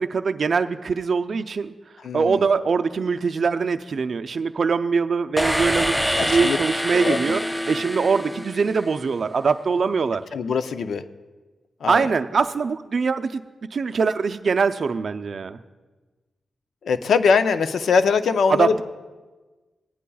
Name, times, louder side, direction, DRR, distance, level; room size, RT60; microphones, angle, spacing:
voice 1, 0.0-1.7 2.1-7.4 7.7-10.2 11.9-13.4 13.7-15.6 18.5-18.8, right 5 dB, 60° right, 9 dB, 0.5 m, -23 dB
voice 2, 2.0-2.4 6.2-6.6 6.9-7.4 10.3-11.0 11.8-12.1 16.8-18.8, left 5 dB, 80° left, 11 dB, 0.5 m, -22 dB
sound 1, 5.4-9.2, equal, ahead, 0.3 m, -26 dB
19.0 x 9.9 x 2.3 m, 1.2 s
cardioid pair, 80°, 0 cm